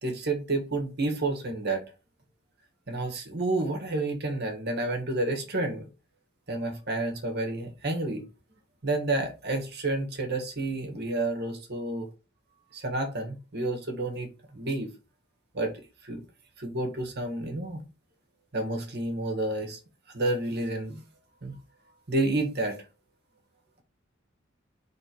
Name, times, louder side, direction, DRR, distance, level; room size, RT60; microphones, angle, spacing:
voice 1, 0.0-1.8 2.9-5.9 6.5-8.2 8.8-12.1 12.7-14.9 15.5-16.2 16.6-17.8 18.5-19.8 20.1-21.0 21.4-21.5 22.1-22.8, right 2 dB, 55° right, 1.6 m, -30 dB
4.6 x 3.8 x 5.3 m
head